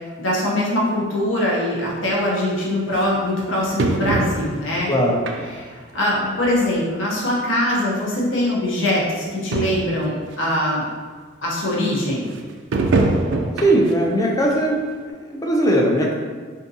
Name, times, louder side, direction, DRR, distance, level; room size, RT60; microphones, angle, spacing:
voice 1, 0.2-4.9 5.6-10.9 11.4-12.2, left 1 dB, 80° left, -5 dB, 0.8 m, -22 dB
sound 1, 1.9-2.0 2.9-3.0 3.8-4.7 5.3-5.8 6.2-6.3 7.2-7.3 7.5-7.6 8.5-8.6 8.9-9.0 9.2-9.3 9.5-10.0 10.5-10.6 12.7-14.0 14.4-14.6 15.1-15.2, right 3 dB, 65° right, 0.3 m, -23 dB
voice 2, 4.9-5.2 13.6-16.1, right 1 dB, 20° left, -1 dB, 0.4 m, -19 dB
3.6 x 2.6 x 2.7 m, 1.6 s
head